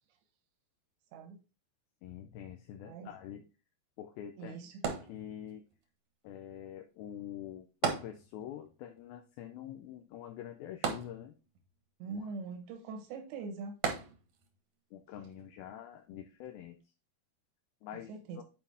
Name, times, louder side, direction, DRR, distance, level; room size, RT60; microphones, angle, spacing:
voice 1, 2.0-3.4 4.0-4.6 4.8-5.6 6.2-11.3 12.1-12.3 14.9-16.8 17.8-18.4, left 10 dB, 80° left, 2.3 m, -46 dB
voice 2, 4.4-4.9 12.0-13.8 17.9-18.4, right 4 dB, 90° right, 3.5 m, -42 dB
sound 1, 4.8-5.7 7.8-8.7 9.0-9.1 10.8-11.7 13.8-14.6 15.2-15.3, right 6 dB, 65° right, 1.7 m, -35 dB
9.1 x 4.7 x 3.5 m
omnidirectional pair, 4.9 m